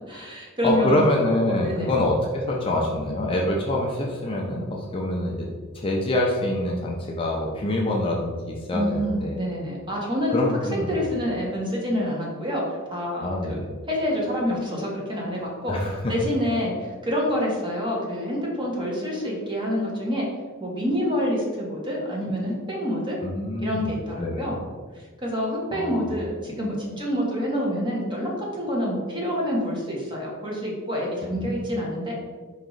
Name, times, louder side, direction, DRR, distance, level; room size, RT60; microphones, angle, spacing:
voice 1, 0.1-1.0 1.5-2.0 8.7-13.6 13.9-15.7 16.1-20.3 20.6-23.2 23.6-24.6 24.9-32.1, equal, 20° right, -3 dB, 1.1 m, -27 dB
voice 2, 0.6-5.5 5.7-9.6 10.3-11.1 13.2-13.7 15.7-16.1 23.2-24.6 25.7-26.1 31.3-31.5, left 1 dB, 25° left, -1 dB, 0.5 m, -25 dB
4.6 x 3.0 x 3.8 m, 1.5 s
head